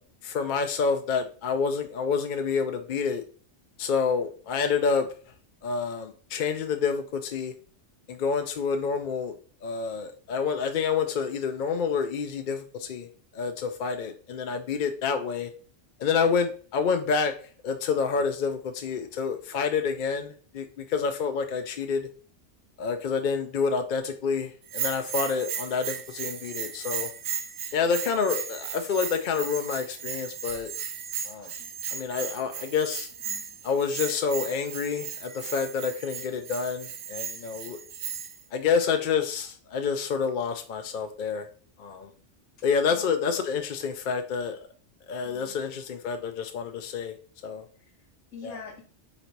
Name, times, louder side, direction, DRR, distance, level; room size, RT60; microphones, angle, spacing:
voice 1, 0.2-3.2 3.8-5.1 5.6-7.5 8.1-9.3 9.6-15.5 16.0-17.3 17.6-22.1 22.8-27.1 27.7-30.7 31.2-31.5 31.9-33.1 33.6-37.8 38.5-41.5 41.8-42.1 42.6-44.6 45.1-47.1 47.4-47.7 48.4-48.5, left 5 dB, 60° left, 6 dB, 0.5 m, -28 dB
Bell, 24.7-38.4, right 7 dB, 75° right, 0.9 m, -36 dB
voice 2, 31.4-31.7 33.2-33.7 42.9-43.1 45.2-45.6 47.7-48.8, left 5 dB, 90° left, -1 dB, 1.2 m, -46 dB
4.0 x 2.7 x 4.5 m, 0.41 s
omnidirectional pair, 1.2 m